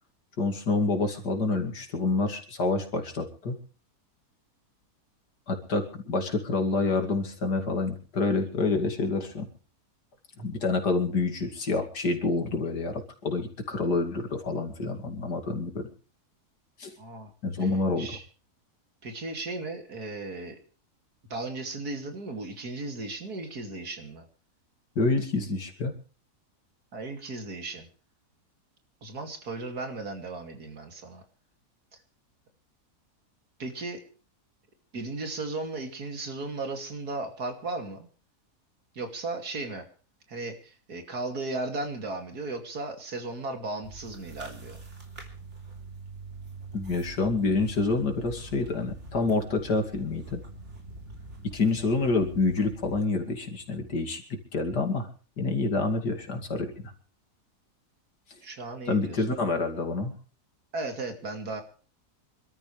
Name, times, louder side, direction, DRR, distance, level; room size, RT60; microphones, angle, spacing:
voice 1, 0.4-3.6 5.5-9.5 10.4-15.9 16.8-16.9 17.4-18.1 25.0-26.0 46.7-50.4 51.5-55.1 55.4-56.7 58.9-60.1, left 3 dB, 85° left, 3 dB, 3.0 m, -27 dB
voice 2, 17.0-17.3 18.0-18.2 19.0-20.6 21.3-24.3 26.9-27.9 29.0-31.2 33.6-34.0 34.9-38.1 38.9-39.9 40.3-44.8 58.4-59.2 60.7-61.6, right 2 dB, 70° right, 5 dB, 3.1 m, -36 dB
sound 1, 43.8-53.0, right 3 dB, 45° right, 3.5 m, -44 dB
26.5 x 13.0 x 3.3 m, 0.38 s
omnidirectional pair, 1.7 m